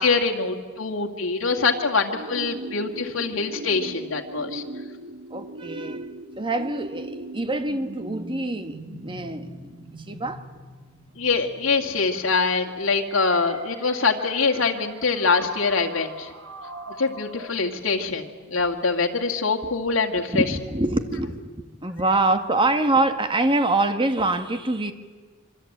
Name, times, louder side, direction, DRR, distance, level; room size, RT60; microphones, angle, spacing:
voice 1, 0.0-4.6 11.2-16.3 17.0-20.4, left 4 dB, 80° left, 1 dB, 2.2 m, -24 dB
sound 1, 1.3-17.5, right 2 dB, 80° right, 3.2 m, -40 dB
voice 2, 5.3-6.0 6.4-9.8 10.1-10.4 20.3-21.4 21.8-24.9, right 2 dB, 25° right, 8 dB, 1.8 m, -25 dB
26.5 x 24.5 x 8.8 m, 1.4 s
head